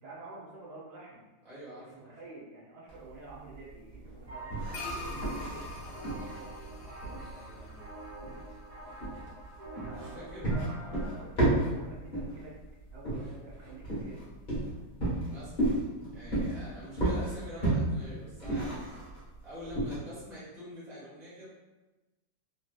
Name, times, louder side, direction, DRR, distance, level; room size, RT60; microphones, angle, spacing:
voice 1, 0.0-1.3 1.9-5.7 9.7-10.6 11.0-12.5 12.9-14.3, right 2 dB, 65° right, -5 dB, 1.1 m, -49 dB
voice 2, 1.4-2.2 7.0-7.8 9.9-10.5 15.3-15.6 16.1-18.8 19.4-21.5, equal, 5° right, -9 dB, 0.6 m, -46 dB
sound 1, 2.9-19.9, right 2 dB, 30° left, 1.1 m, -33 dB
sound 2, 4.3-11.2, right 2 dB, 35° right, 1.6 m, -47 dB
sound 3, 4.7-9.3, left 2 dB, 85° left, 1.3 m, -44 dB
3.2 x 2.7 x 2.3 m, 1.1 s
omnidirectional pair, 2.0 m